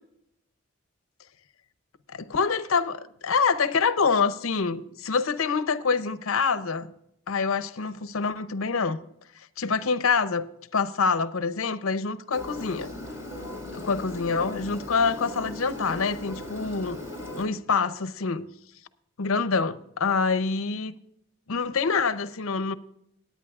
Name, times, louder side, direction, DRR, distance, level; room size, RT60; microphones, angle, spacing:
voice 1, 2.1-6.9 7.3-9.0 9.6-12.9 13.8-17.0 17.4-18.5 19.2-20.9 21.5-22.7, left 5 dB, 85° left, 0.7 m, -26 dB
Engine, 12.3-17.5, left 1 dB, 15° right, 2.9 m, -38 dB
19.5 x 9.2 x 2.4 m
head